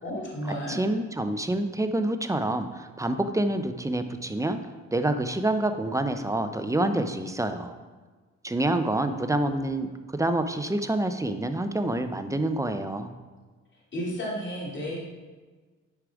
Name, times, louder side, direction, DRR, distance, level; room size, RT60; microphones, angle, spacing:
voice 1, 0.0-0.8 13.9-15.0, equal, 40° left, -5 dB, 2.7 m, -32 dB
voice 2, 0.7-4.6 4.9-7.8 8.4-13.1, right 1 dB, 10° right, 8 dB, 0.6 m, -27 dB
9.8 x 4.9 x 4.8 m, 1.4 s
cardioid pair, 90°, 30 cm